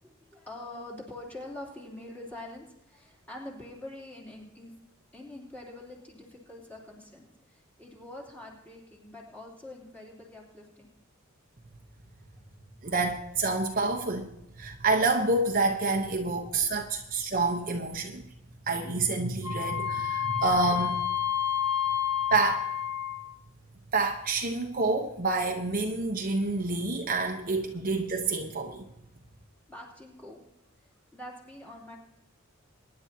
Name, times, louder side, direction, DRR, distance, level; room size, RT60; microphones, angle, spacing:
voice 1, 0.0-4.8 5.1-10.9 29.7-30.4 30.8-32.0, left 1 dB, 5° left, -3 dB, 3.0 m, -45 dB
voice 2, 12.8-14.3 14.6-18.2 18.7-21.1 22.3-22.7 23.9-28.8, right 3 dB, 40° right, 3 dB, 0.9 m, -28 dB
Wind instrument woodwind instrument, 19.4-23.3, left 9 dB, 15° right, 1.1 m, -29 dB
23.0 x 10.5 x 2.8 m, 0.85 s
head